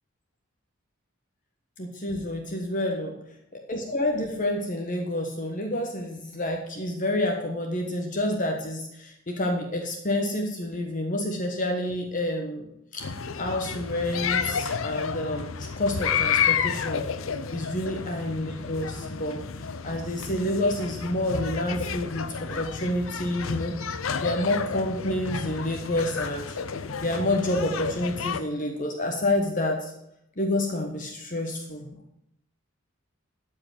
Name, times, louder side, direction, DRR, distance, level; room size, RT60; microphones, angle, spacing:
voice 1, 1.8-3.1 3.5-13.1 13.4-17.0 17.5-19.4 19.8-23.7 24.2-26.6 27.0-29.9 30.4-31.9, left 1 dB, 40° left, 3 dB, 1.2 m, -28 dB
sound 1, 13.0-28.4, left 6 dB, 70° left, 0.6 m, -31 dB
13.0 x 4.8 x 7.5 m, 0.78 s
head